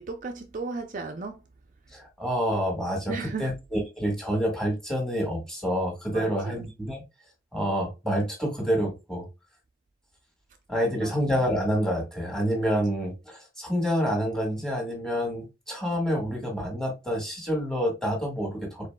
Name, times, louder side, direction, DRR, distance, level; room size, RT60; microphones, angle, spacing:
voice 1, 0.0-1.4 3.1-3.5 6.1-6.6 10.8-11.1 12.6-12.7, right 4 dB, 45° right, 0.5 m, -35 dB
voice 2, 1.9-7.0 7.5-9.3 10.7-18.9, equal, 5° left, 1.7 m, -28 dB
4.9 x 4.1 x 2.2 m
head